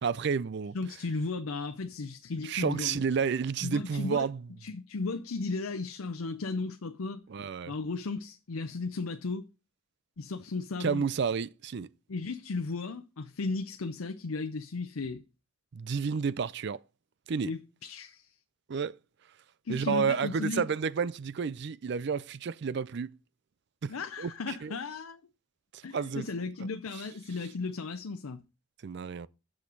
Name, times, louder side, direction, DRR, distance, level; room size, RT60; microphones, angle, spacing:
voice 1, 0.0-0.8 2.4-4.4 7.3-7.7 10.8-11.9 15.7-16.8 17.3-17.5 18.7-18.9 19.7-23.2 23.8-24.7 25.7-26.3 28.8-29.3, right 6 dB, 55° right, 0.4 m, -31 dB
voice 2, 0.7-3.0 3.6-4.3 4.6-7.2 7.7-9.5 10.2-11.0 12.1-15.2 17.4-18.3 19.6-20.7 23.9-25.2 25.8-28.4, left 3 dB, 90° left, 0.6 m, -35 dB
8.4 x 6.5 x 5.2 m
head